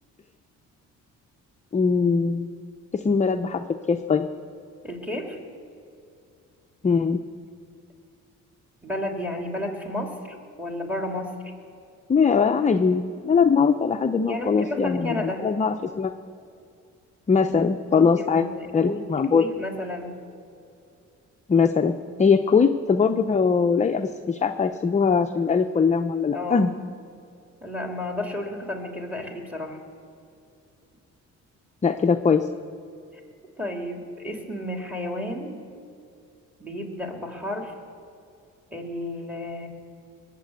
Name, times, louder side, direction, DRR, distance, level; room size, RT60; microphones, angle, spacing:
voice 1, 1.7-2.5 2.9-4.3 6.8-7.2 12.1-16.1 17.3-18.5 18.7-19.4 21.5-26.7 31.8-32.5, left 5 dB, 25° left, 7 dB, 0.6 m, -21 dB
voice 2, 4.8-5.4 8.8-11.4 14.3-15.5 17.9-19.0 19.3-20.1 26.3-26.7 27.6-29.8 33.1-33.2 33.6-35.6 36.6-37.7 38.7-39.7, left 1 dB, 5° right, 2 dB, 2.8 m, -32 dB
20.0 x 7.6 x 8.0 m, 2.5 s
cardioid pair, 90°, 30 cm